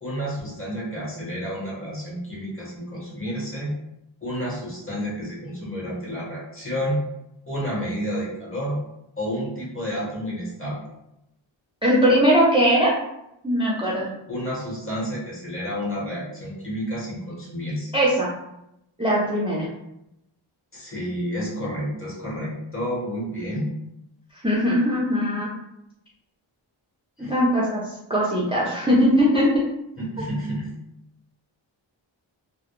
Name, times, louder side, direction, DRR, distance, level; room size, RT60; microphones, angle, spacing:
voice 1, 0.0-3.7 4.2-7.0 7.5-8.8 9.2-10.8 14.3-17.9 20.7-23.7 27.2-27.4 30.0-30.7, equal, 25° left, -5 dB, 0.9 m, -30 dB
voice 2, 11.8-12.9 13.4-14.1 17.9-18.3 19.0-19.7 24.4-25.5 27.2-29.4, equal, 10° right, -6 dB, 0.4 m, -20 dB
2.1 x 2.0 x 3.0 m, 0.84 s
wide cardioid pair, 65°, 48 cm